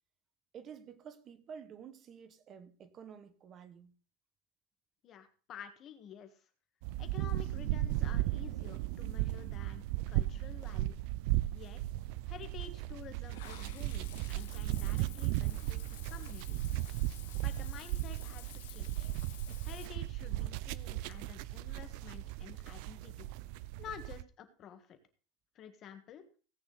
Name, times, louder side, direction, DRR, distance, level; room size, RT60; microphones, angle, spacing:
voice 1, 0.5-3.9, right 7 dB, 25° right, 1.2 m, -50 dB
voice 2, 5.0-6.4 7.0-10.9 11.5-11.8 12.3-16.7 17.4-19.1 19.6-23.3 23.8-25.0 25.6-26.3, left 8 dB, 25° left, 1.6 m, -51 dB
sound 1, 6.8-24.2, right 16 dB, 50° right, 0.5 m, -36 dB
Water / Bathtub (filling or washing), 13.3-19.9, left 15 dB, 80° left, 1.1 m, -53 dB
17.5 x 8.8 x 4.1 m
supercardioid pair, 175°, 0 cm